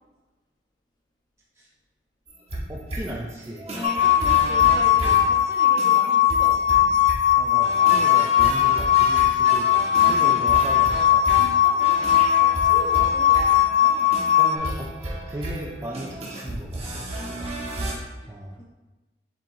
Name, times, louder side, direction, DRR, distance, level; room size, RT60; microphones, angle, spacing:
sound 1, 2.3-17.9, right 1 dB, 35° right, 0.8 m, -33 dB
voice 1, 2.7-4.0 7.4-11.3 14.4-14.9 15.3-17.6 18.3-18.6, right 1 dB, 15° right, -3 dB, 0.3 m, -37 dB
voice 2, 3.7-7.0 9.9-10.4 10.8-14.3 17.1-18.3 18.6-18.7, equal, 25° left, -2 dB, 0.8 m, -39 dB
sound 2, 3.8-14.6, left 10 dB, 85° left, 0.3 m, -19 dB
7.0 x 2.8 x 2.6 m, 1.2 s
head